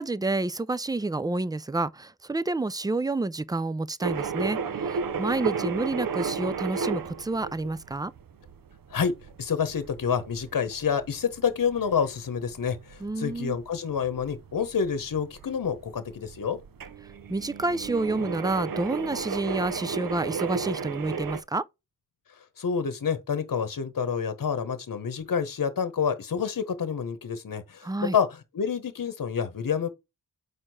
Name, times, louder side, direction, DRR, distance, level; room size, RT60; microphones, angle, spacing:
voice 1, 0.0-4.6 4.9-8.1 13.0-13.6 17.3-21.6 27.8-28.2, right 2 dB, 10° right, 0.4 m, -29 dB
sound 1, 4.0-21.4, right 5 dB, 65° right, 0.7 m, -34 dB
voice 2, 9.4-16.6 22.6-29.9, left 7 dB, 60° left, 1.0 m, -28 dB
4.9 x 4.5 x 4.8 m
cardioid pair, 60°, 37 cm